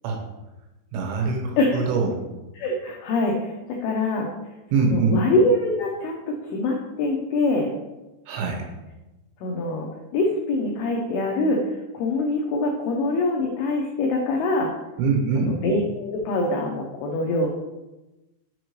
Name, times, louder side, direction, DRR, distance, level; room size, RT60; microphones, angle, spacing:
voice 1, 0.9-2.2 4.7-5.2 8.3-8.6 15.0-15.5, right 4 dB, 90° right, 1 dB, 3.4 m, -23 dB
voice 2, 2.6-4.3 4.8-7.7 9.4-14.7 15.4-17.5, left 2 dB, 85° left, 0 dB, 2.2 m, -24 dB
6.9 x 5.1 x 3.1 m, 1.0 s
omnidirectional pair, 5.3 m